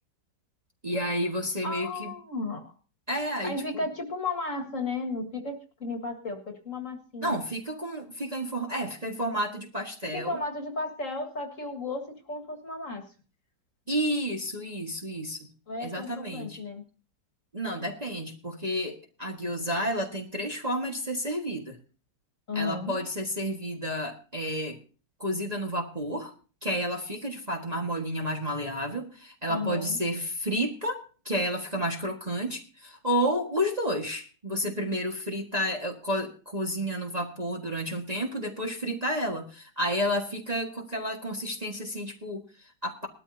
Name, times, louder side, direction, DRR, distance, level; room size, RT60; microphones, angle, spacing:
voice 1, 0.8-2.1 3.1-3.9 7.2-10.4 13.9-15.5 15.8-16.6 17.5-21.8 22.5-24.8 25.2-26.3 26.6-43.1, equal, 20° right, 1 dB, 1.6 m, -31 dB
voice 2, 1.6-2.7 3.4-7.4 10.1-13.1 15.7-16.8 22.5-23.0 29.5-30.0, left 3 dB, 40° left, 4 dB, 2.1 m, -34 dB
20.0 x 13.0 x 2.8 m, 0.37 s
omnidirectional pair, 2.1 m